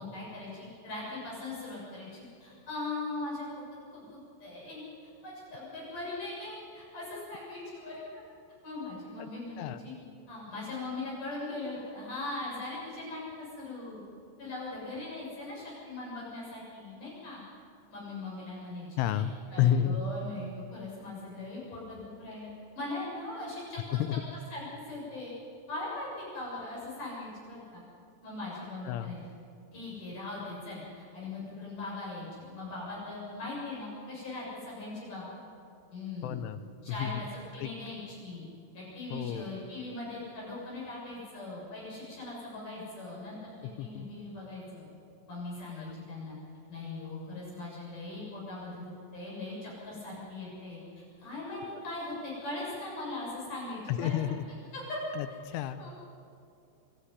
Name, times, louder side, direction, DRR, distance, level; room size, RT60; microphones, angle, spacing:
voice 1, 0.0-3.6 3.9-4.8 5.2-8.2 8.6-9.9 10.3-14.0 14.4-17.4 17.9-18.9 19.1-19.2 19.5-24.0 24.5-25.3 25.7-27.8 28.2-29.2 29.7-35.4 35.9-36.4 36.8-38.4 38.7-44.9 45.3-46.4 46.7-54.1 54.7-55.0 55.8-55.9, left 2 dB, 40° left, -5 dB, 8.5 m, -40 dB
voice 2, 19.0-20.0 23.9-24.2 28.9-29.1 36.2-36.6 36.9-37.2 37.6-37.7 39.1-39.5 43.6-44.1 45.8-45.9 53.9-54.4 55.2-55.8, left 10 dB, 80° left, 11 dB, 3.0 m, -30 dB
27.0 x 12.0 x 9.8 m, 2.5 s
omnidirectional pair, 5.9 m